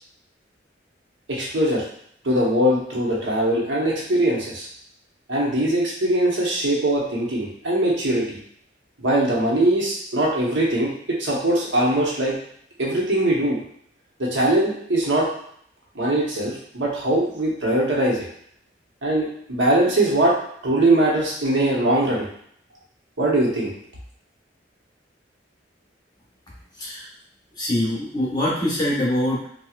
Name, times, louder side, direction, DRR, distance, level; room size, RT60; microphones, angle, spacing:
voice 1, 1.3-1.8 2.2-4.7 5.3-8.4 9.0-12.3 12.8-13.6 14.2-15.3 15.9-18.2 19.0-20.3 20.6-22.2 23.2-23.7, right 1 dB, 85° right, -4 dB, 1.0 m, -21 dB
voice 2, 27.6-29.5, left 1 dB, 20° left, -6 dB, 1.1 m, -23 dB
4.3 x 2.3 x 2.4 m, 0.66 s
head